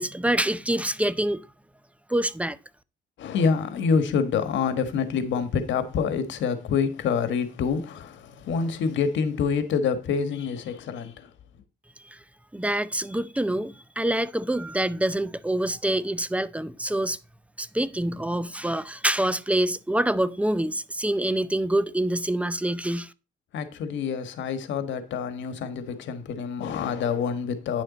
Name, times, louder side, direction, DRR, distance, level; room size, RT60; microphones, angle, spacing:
voice 1, 0.0-1.4 2.1-2.6 12.0-12.2 12.5-17.2 17.6-23.1, right 1 dB, 5° right, 0.6 m, -26 dB
voice 2, 3.2-11.3 23.5-27.8, left 6 dB, 85° left, 1.4 m, -27 dB
9.7 x 6.6 x 4.1 m
cardioid pair, 105°, 19 cm